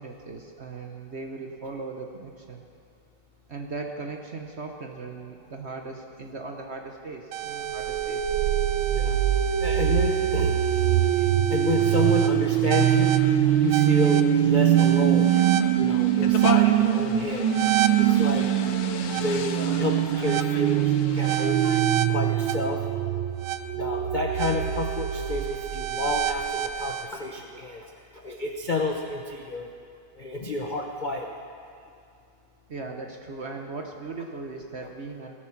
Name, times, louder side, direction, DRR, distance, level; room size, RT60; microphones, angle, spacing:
voice 1, 0.0-2.6 3.5-8.3 27.6-27.7 32.7-35.3, right 3 dB, 50° right, 2 dB, 0.8 m, -38 dB
sound 1, 7.3-27.1, right 11 dB, 85° right, 1.4 m, -23 dB
voice 2, 9.6-15.3 15.8-17.5 18.0-18.5 19.2-21.6 22.1-22.9 23.7-29.7 30.1-31.3, left 3 dB, 85° left, 1 dB, 0.4 m, -30 dB
sound 2, 11.8-21.8, left 6 dB, 70° left, 1.4 m, -37 dB
18.0 x 9.3 x 5.9 m, 2.5 s
omnidirectional pair, 2.2 m